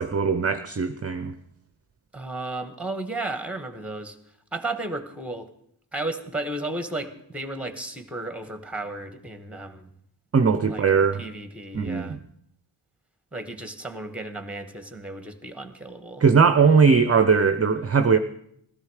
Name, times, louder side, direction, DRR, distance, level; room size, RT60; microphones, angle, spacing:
voice 1, 0.0-1.3 10.3-11.2 11.7-12.2 16.2-18.2, right 5 dB, 30° right, 0.6 m, -19 dB
voice 2, 2.1-4.2 4.5-5.5 5.9-9.9 10.7-10.8 11.1-12.2 13.3-16.2, right 2 dB, 5° right, 1.3 m, -34 dB
15.5 x 13.5 x 4.8 m
wide cardioid pair, 90°, 47 cm